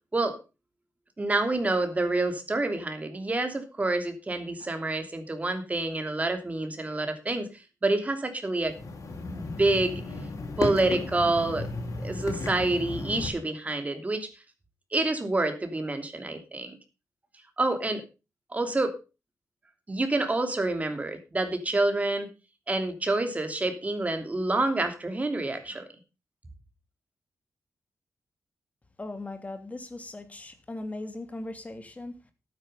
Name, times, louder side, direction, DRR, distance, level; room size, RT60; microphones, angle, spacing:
voice 1, 1.2-7.5 7.8-8.8 9.3-10.0 10.6-11.7 12.0-14.3 14.9-16.8 17.6-18.0 18.5-19.0 19.9-22.3 22.7-25.8, right 2 dB, 25° right, 3.0 m, -27 dB
sound 1, 8.6-13.3, left 3 dB, 65° left, 4.7 m, -34 dB
voice 2, 29.0-32.1, left 2 dB, 25° left, 2.6 m, -38 dB
12.0 x 9.5 x 5.5 m
cardioid pair, 95°, 6 cm